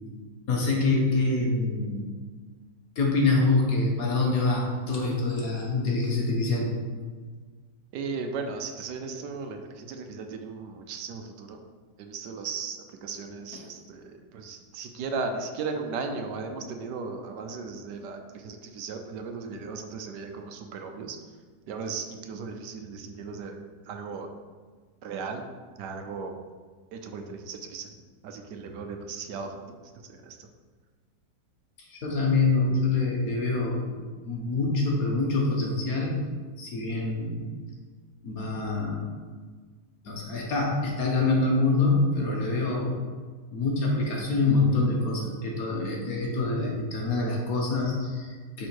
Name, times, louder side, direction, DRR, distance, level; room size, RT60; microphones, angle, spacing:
voice 1, 0.5-2.1 3.0-6.7 31.8-34.0 34.2-36.2 36.6-37.5 38.2-39.1 40.0-43.0 43.5-48.7, left 3 dB, 60° left, -1 dB, 1.5 m, -25 dB
voice 2, 7.9-11.6 12.0-21.2 21.7-24.3 25.0-25.5 25.8-26.3 26.9-27.9 28.2-29.6 30.1-30.5, right 4 dB, 80° right, 5 dB, 1.2 m, -36 dB
6.3 x 3.7 x 4.6 m, 1.5 s
omnidirectional pair, 1.8 m